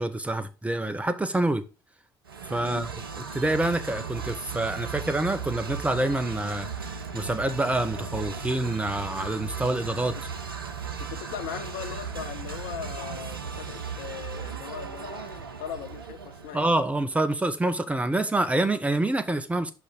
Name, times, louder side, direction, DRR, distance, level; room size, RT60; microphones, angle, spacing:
voice 1, 0.0-1.6 2.4-2.9 3.3-6.7 7.1-10.1 16.5-19.7, right 2 dB, 10° right, 1.0 m, -26 dB
sound 1, 2.2-16.9, right 6 dB, 80° right, 0.5 m, -36 dB
voice 2, 11.0-16.7, left 10 dB, 65° left, 0.8 m, -39 dB
6.0 x 5.7 x 3.8 m
figure-of-eight pair, 50°, 12 cm